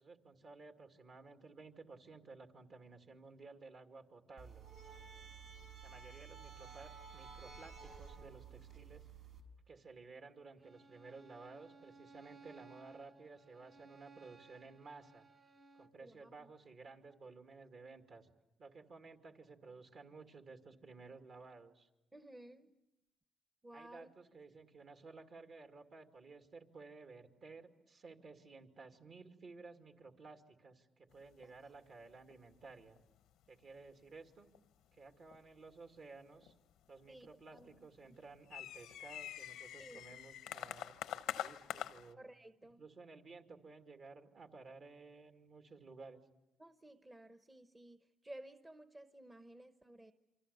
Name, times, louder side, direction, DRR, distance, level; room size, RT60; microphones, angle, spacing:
voice 1, 0.0-4.7 5.8-9.1 9.7-15.3 15.8-18.3 18.6-21.9 23.7-33.0 33.5-34.5 34.9-36.5 36.9-42.2 42.6-46.2, right 4 dB, 55° right, 5 dB, 2.6 m, -55 dB
sound 1, 4.4-9.4, right 6 dB, 90° right, 4.6 m, -53 dB
Bowed string instrument, 10.6-16.0, right 3 dB, 40° right, 1.2 m, -60 dB
voice 2, 16.0-16.5 22.1-22.7 23.6-24.1 37.1-37.7 39.8-40.0 42.2-42.8 46.6-50.1, right 1 dB, 20° right, 9 dB, 1.0 m, -55 dB
sound 2, 31.1-31.6 31.9-32.0 32.3-32.6 32.8-33.2 33.4-34.0 34.5-34.6 35.3-35.7 36.4-37.3 37.6-42.1, left 11 dB, 90° left, 0.9 m, -45 dB
28.5 x 25.0 x 7.1 m, 0.92 s
cardioid pair, 90°, 0 cm